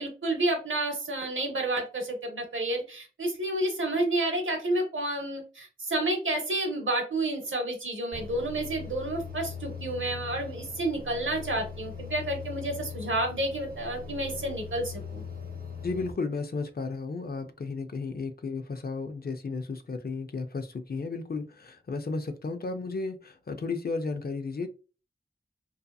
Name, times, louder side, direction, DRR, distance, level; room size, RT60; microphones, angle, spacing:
voice 1, 0.0-15.2, right 1 dB, 85° right, 0.8 m, -30 dB
sound 1, 8.1-16.1, left 5 dB, 50° right, 0.6 m, -40 dB
voice 2, 15.8-24.7, left 4 dB, 50° left, 0.4 m, -33 dB
2.7 x 2.4 x 2.2 m
wide cardioid pair, 65°, 20 cm